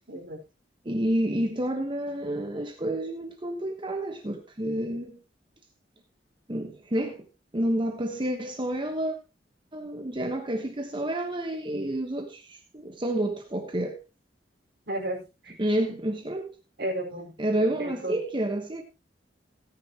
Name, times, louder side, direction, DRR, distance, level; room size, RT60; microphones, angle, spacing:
voice 1, 0.1-0.4 14.9-15.5 15.9-16.0 16.8-17.3 17.6-18.2, right 1 dB, 65° right, 4.9 m, -33 dB
voice 2, 0.8-5.2 6.5-7.3 7.5-9.2 9.7-14.0 15.6-16.5 17.4-18.8, right 1 dB, 30° right, 1.2 m, -29 dB
17.5 x 10.0 x 3.0 m
head